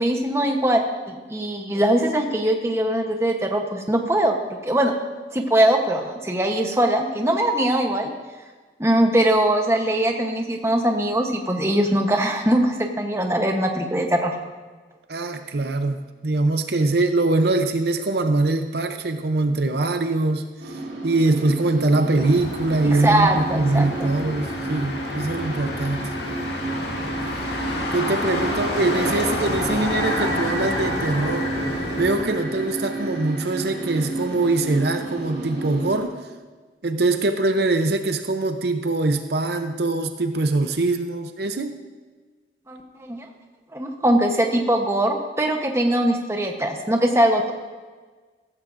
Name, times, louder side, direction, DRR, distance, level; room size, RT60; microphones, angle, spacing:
voice 1, 0.0-4.4 4.6-4.9 5.3-8.1 8.8-14.3 22.9-24.1 42.7-43.2 43.7-47.5, right 1 dB, 15° right, 3 dB, 1.0 m, -21 dB
voice 2, 15.1-26.1 27.9-31.5 32.0-36.2 36.8-41.7, right 2 dB, 65° right, 7 dB, 0.7 m, -23 dB
sound 1, 20.6-36.0, right 2 dB, 80° right, 4.1 m, -32 dB
Motor vehicle (road), 22.1-32.3, left 1 dB, 65° left, 1.9 m, -29 dB
sound 2, 29.8-35.0, equal, 15° left, 2.4 m, -35 dB
15.5 x 14.5 x 2.6 m, 1.4 s
head